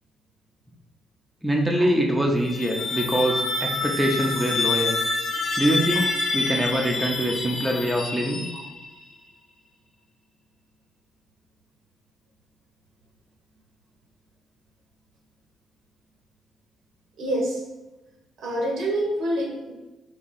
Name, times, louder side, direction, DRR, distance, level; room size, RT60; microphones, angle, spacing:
voice 1, 1.4-4.9 5.6-8.4, equal, 5° right, 0 dB, 0.7 m, -24 dB
sound 1, 2.3-9.0, left 3 dB, 50° left, 0.7 m, -27 dB
voice 2, 17.2-17.6 18.4-19.7, right 1 dB, 75° right, 0 dB, 1.1 m, -26 dB
3.6 x 2.8 x 4.2 m, 1.1 s
cardioid pair, 90°, 0 cm